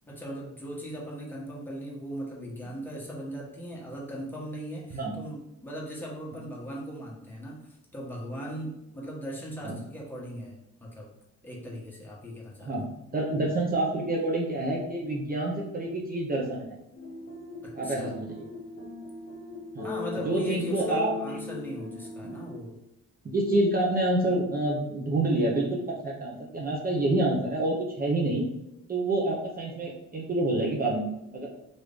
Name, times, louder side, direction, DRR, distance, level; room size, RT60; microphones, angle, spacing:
voice 1, 0.0-11.1 11.4-12.7 17.6-18.1 19.8-22.8, equal, 5° left, -5 dB, 1.1 m, -39 dB
voice 2, 12.7-16.6 17.7-18.5 19.7-19.9 20.3-21.1 22.2-22.4 23.2-28.5 28.9-31.5, right 2 dB, 30° right, -3 dB, 0.7 m, -28 dB
sound 1, 17.0-22.6, left 3 dB, 40° left, 0.8 m, -39 dB
3.1 x 2.6 x 3.4 m, 0.87 s
cardioid pair, 90°, 30 cm